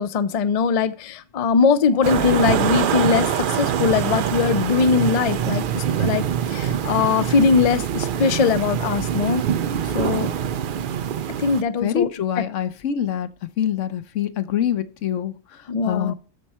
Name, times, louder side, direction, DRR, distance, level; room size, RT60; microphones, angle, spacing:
voice 1, 0.0-9.4 9.9-10.3 11.4-12.1 12.4-12.5 15.7-16.1, left 5 dB, 50° left, 14 dB, 0.4 m, -21 dB
sound 1, 2.0-11.6, right 9 dB, 55° right, 0.6 m, -24 dB
voice 2, 11.8-13.3 13.6-16.1, left 9 dB, 90° left, 12 dB, 1.1 m, -25 dB
13.0 x 4.6 x 4.2 m, 0.37 s
omnidirectional pair, 1.3 m